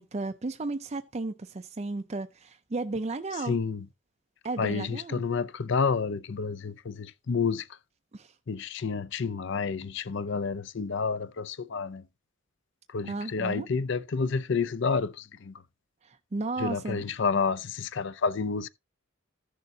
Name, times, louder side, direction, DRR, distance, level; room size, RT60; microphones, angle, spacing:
voice 1, 0.0-3.6 4.4-5.2 8.1-8.3 13.0-13.7 16.0-17.0, right 3 dB, 30° right, 0.4 m, -34 dB
voice 2, 3.4-3.9 4.6-7.8 8.5-12.1 12.9-15.6 16.6-18.7, left 5 dB, 55° left, 0.5 m, -29 dB
14.5 x 6.7 x 2.8 m
head